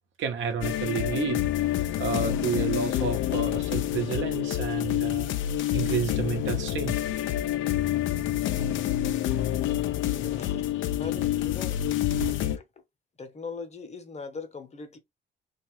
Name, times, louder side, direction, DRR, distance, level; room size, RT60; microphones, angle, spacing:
voice 1, 0.2-1.7 2.0-5.3 5.7-7.0 9.7-9.8 10.3-10.4 11.9-12.5, right 6 dB, 70° right, 0.8 m, -31 dB
sound 1, 0.6-12.6, left 12 dB, 75° left, 0.4 m, -27 dB
voice 2, 10.1-10.7 11.0-11.8 12.5-12.6 13.2-15.0, left 4 dB, 35° left, 0.8 m, -40 dB
2.8 x 2.3 x 3.0 m
cardioid pair, 90°, 20 cm